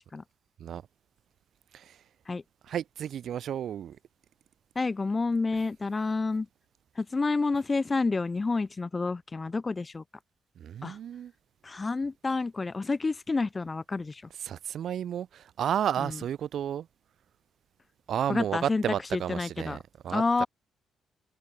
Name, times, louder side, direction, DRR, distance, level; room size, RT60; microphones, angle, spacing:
voice 1, 1.7-2.0 2.6-4.0 10.6-11.3 14.4-16.9 18.1-20.5, right 9 dB, 65° right, 0.7 m, -32 dB
voice 2, 4.7-6.5 7.0-10.0 10.8-11.0 11.6-14.2 16.0-16.1 18.3-18.8 19.3-19.8 20.1-20.5, left 3 dB, 25° left, 1.1 m, -29 dB
cardioid pair, 90°, 0 cm